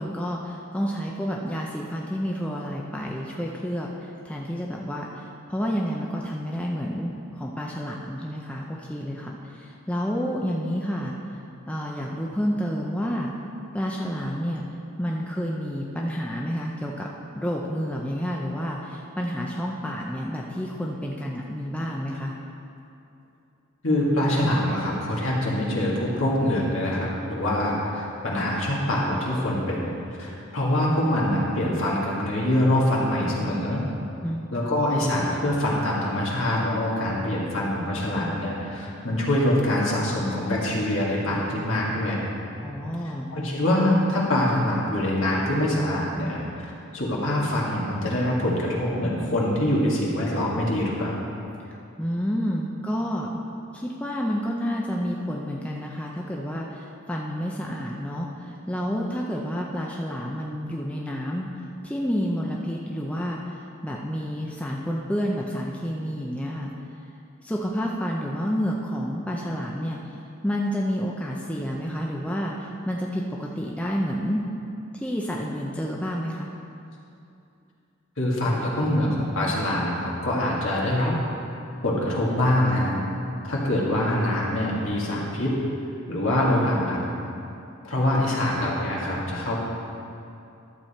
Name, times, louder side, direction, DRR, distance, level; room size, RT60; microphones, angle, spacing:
voice 1, 0.0-11.4 11.7-13.3 13.7-14.7 15.0-17.1 17.3-22.3 34.2-34.4 42.6-43.3 51.6-53.4 53.7-61.5 61.8-66.7 67.4-70.2 70.4-74.4 74.9-76.5, equal, 5° left, -2 dB, 0.5 m, -29 dB
voice 2, 23.8-29.9 30.2-33.8 34.5-42.2 43.3-51.2 78.2-81.1 81.8-82.9 83.4-85.5 86.1-87.0 87.8-89.5, left 1 dB, 65° left, -4 dB, 2.0 m, -24 dB
12.0 x 7.4 x 4.3 m, 2.7 s
head